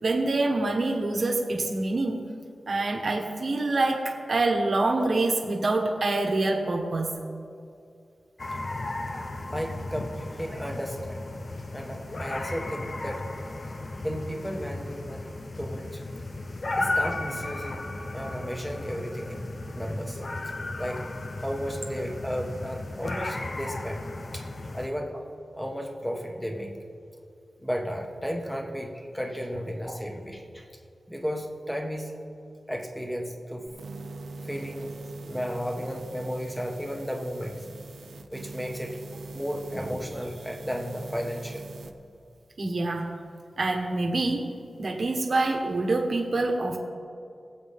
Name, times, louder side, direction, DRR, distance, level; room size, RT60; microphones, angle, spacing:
voice 1, 0.0-2.2 2.7-7.2 42.6-43.1 43.6-44.5 44.8-46.8, right 2 dB, 55° right, 2 dB, 1.5 m, -26 dB
sound 1, 8.4-24.9, left 2 dB, 45° left, 0.8 m, -35 dB
voice 2, 9.3-11.2 11.7-13.2 14.0-16.0 16.7-17.8 18.1-19.5 19.7-20.2 20.8-21.0 21.4-24.1 24.3-24.4 24.7-25.2 25.6-26.8 27.6-30.7 31.1-32.1 32.7-33.7 34.4-37.7 38.0-39.0 39.3-41.6, equal, 5° left, 1 dB, 1.5 m, -34 dB
sound 2, 33.7-41.9, right 3 dB, 80° right, 0.7 m, -42 dB
22.0 x 8.0 x 3.7 m, 2.5 s
wide cardioid pair, 100°, 0 cm